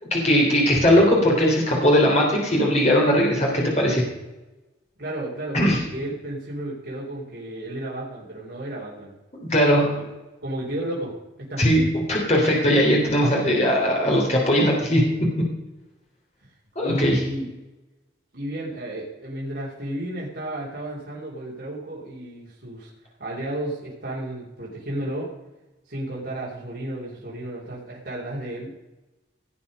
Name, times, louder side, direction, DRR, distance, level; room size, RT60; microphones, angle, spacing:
voice 1, 0.1-4.0 5.5-5.8 9.4-9.9 11.6-15.0 16.8-17.2, equal, 35° left, -2 dB, 3.3 m, -19 dB
voice 2, 5.0-9.1 10.4-11.6 16.8-17.5 18.3-22.9 23.2-25.3 25.9-28.7, right 1 dB, 55° right, -6 dB, 4.1 m, -32 dB
18.0 x 8.7 x 5.4 m, 1.0 s
head